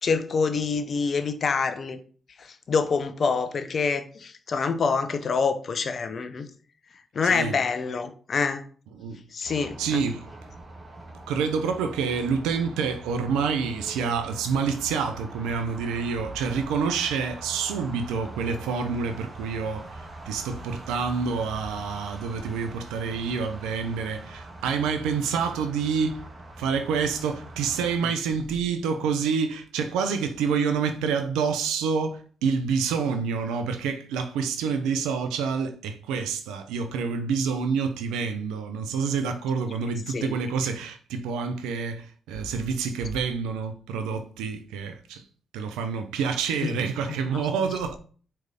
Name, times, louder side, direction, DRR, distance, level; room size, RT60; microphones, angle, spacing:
voice 1, 0.0-2.0 2.4-6.5 7.1-8.6 9.3-10.0 40.1-40.3 46.6-46.7 47.3-47.4, left 5 dB, 60° left, 0.9 m, -26 dB
voice 2, 7.2-7.6 8.9-10.2 11.3-26.2 26.6-45.2 45.5-48.0, right 5 dB, 85° right, 0.7 m, -28 dB
sound 1, 9.4-28.0, right 2 dB, 50° right, 1.9 m, -43 dB
4.7 x 4.5 x 5.5 m
supercardioid pair, 45°, 0 cm